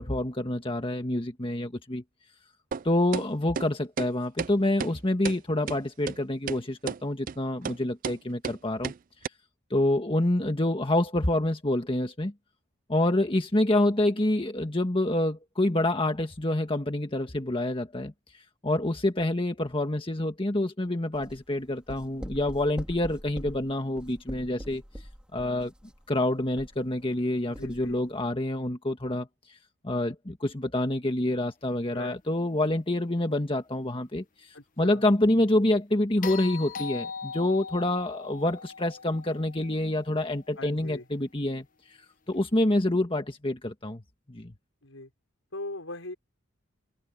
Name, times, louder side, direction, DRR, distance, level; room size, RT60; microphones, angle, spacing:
voice 1, 0.0-2.0 2.8-8.9 9.7-12.3 12.9-18.1 18.6-24.8 25.3-25.7 26.1-29.3 29.8-41.6 42.3-44.0 44.3-44.5, left 1 dB, 25° left, 1.6 m, -27 dB
sound 1, 2.7-2.8 3.1-3.3 3.6-3.7 4.0-4.1 4.4-4.5 4.8-4.9 5.3-5.4 5.7-5.8 6.1-6.2 6.5-6.6 6.9-7.0 7.3-7.4 7.7-7.8 8.0-8.2 8.4-8.6 8.8-9.0 9.2-9.3, right 6 dB, 40° right, 0.3 m, -32 dB
sound 2, 21.1-27.2 27.5-28.0, equal, 5° right, 3.0 m, -43 dB
voice 2, 27.5-28.0 31.9-32.2 34.5-35.0 40.6-41.1 44.8-45.1 45.5-46.2, left 2 dB, 75° left, 5.7 m, -40 dB
sound 3, 36.2-40.5 42.7-42.8, left 6 dB, 40° left, 1.2 m, -40 dB
head